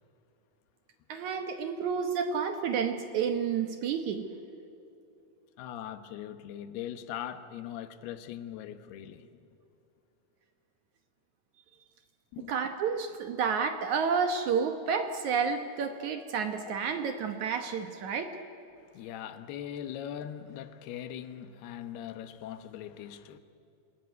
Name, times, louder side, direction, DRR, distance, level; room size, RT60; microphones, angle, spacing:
voice 1, 1.1-4.3 12.5-18.4, right 6 dB, 65° right, 2.1 m, -30 dB
voice 2, 5.6-9.3 12.3-12.5 16.7-16.8 18.9-23.4, left 10 dB, 85° left, 3.1 m, -41 dB
27.5 x 20.0 x 9.4 m
omnidirectional pair, 4.4 m